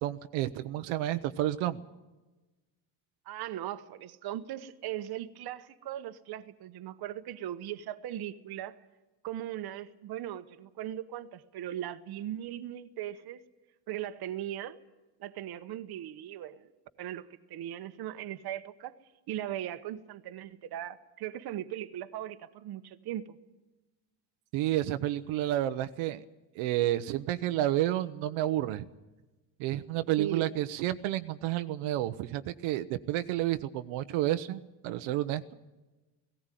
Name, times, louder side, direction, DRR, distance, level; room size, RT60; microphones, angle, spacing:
voice 1, 0.0-1.8 24.5-26.2 26.6-28.8 29.6-35.5, right 14 dB, 80° right, 0.9 m, -30 dB
voice 2, 3.3-8.8 9.2-13.4 13.9-14.8 15.2-16.7 17.0-18.9 19.3-23.4 30.2-30.5, right 12 dB, 50° right, 1.1 m, -38 dB
18.0 x 17.0 x 9.1 m
cardioid pair, 140°, 47 cm